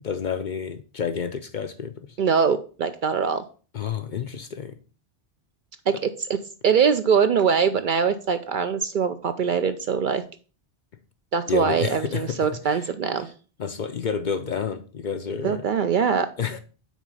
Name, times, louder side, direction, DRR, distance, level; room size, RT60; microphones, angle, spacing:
voice 1, 0.0-1.9 3.7-4.8 11.5-12.4 12.7-12.9 13.6-15.7 16.4-16.6, left 6 dB, 55° left, 0.6 m, -29 dB
voice 2, 2.2-3.4 5.9-6.4 6.6-10.2 11.3-13.3 15.4-16.3, right 6 dB, 60° right, 0.6 m, -22 dB
6.2 x 4.1 x 5.3 m
omnidirectional pair, 1.1 m